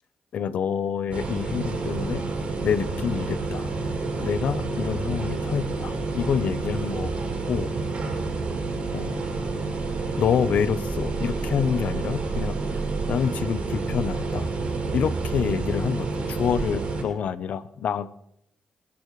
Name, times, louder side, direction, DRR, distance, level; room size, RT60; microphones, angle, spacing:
voice 1, 0.3-2.3 2.6-3.7 4.2-7.1 7.5-7.7 8.9-9.2 10.2-12.8 13.1-14.5 14.9-18.1, left 7 dB, 75° left, 14 dB, 0.9 m, -27 dB
sound 1, 1.1-17.0, right 3 dB, 65° right, 6.3 m, -29 dB
28.5 x 11.0 x 3.3 m, 0.79 s
supercardioid pair, 45°, 2 cm